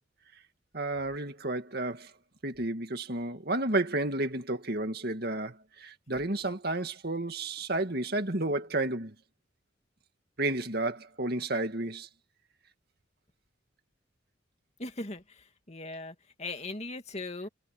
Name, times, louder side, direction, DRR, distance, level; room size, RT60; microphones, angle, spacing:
voice 1, 0.7-2.1 2.4-9.1 10.4-12.1, right 2 dB, 55° right, 2.3 m, -31 dB
voice 2, 14.8-15.2 15.7-17.5, left 2 dB, 35° left, 2.6 m, -38 dB
head